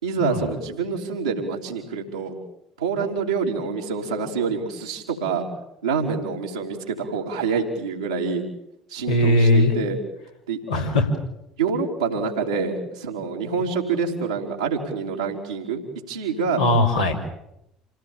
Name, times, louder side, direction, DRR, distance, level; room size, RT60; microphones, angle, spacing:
voice 1, 0.0-2.4 2.8-5.5 5.8-8.4 8.9-10.0 10.5-10.6 11.6-15.8 16.1-16.6, right 5 dB, 80° right, -4 dB, 3.4 m, -26 dB
voice 2, 9.1-9.7 10.7-11.1 16.6-17.1, left 1 dB, 85° left, -4 dB, 3.7 m, -19 dB
27.5 x 18.0 x 8.8 m, 0.84 s
figure-of-eight pair, 60°, 3 cm